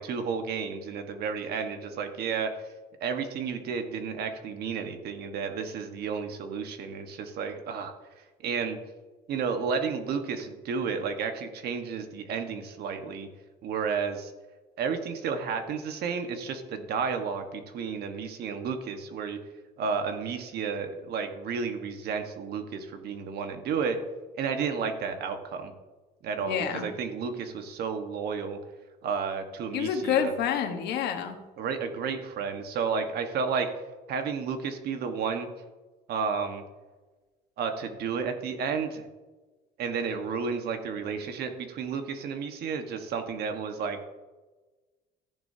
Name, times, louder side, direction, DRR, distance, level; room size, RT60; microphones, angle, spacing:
voice 1, 0.0-2.5 3.0-7.9 8.4-8.8 9.3-13.3 13.6-14.3 14.8-19.4 19.8-24.0 24.4-25.7 26.2-28.6 29.0-30.3 31.6-33.7 34.1-35.5 36.1-36.6 37.6-39.1 39.8-44.1, right 6 dB, 70° right, 6 dB, 1.5 m, -32 dB
voice 2, 26.4-26.9 29.7-31.4, left 8 dB, 80° left, 5 dB, 1.5 m, -28 dB
14.5 x 10.5 x 2.8 m, 1.2 s
cardioid pair, 110°, 17 cm